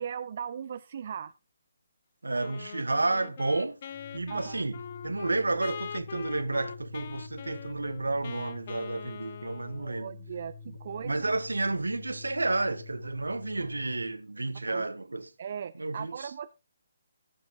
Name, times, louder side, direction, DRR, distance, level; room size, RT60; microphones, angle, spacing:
voice 1, 0.0-1.3 4.3-4.6 9.8-11.3 14.7-14.8 15.4-16.5, right 8 dB, 40° right, 0.5 m, -38 dB
voice 2, 2.2-3.8 4.1-10.1 10.9-15.3 15.8-16.3, right 2 dB, 70° right, 1.1 m, -31 dB
Wind instrument woodwind instrument, 2.4-10.1, left 8 dB, 40° left, 0.7 m, -43 dB
Organ, 3.9-14.2, left 5 dB, 15° left, 1.1 m, -47 dB
15.0 x 10.5 x 2.5 m
figure-of-eight pair, 140°, 0 cm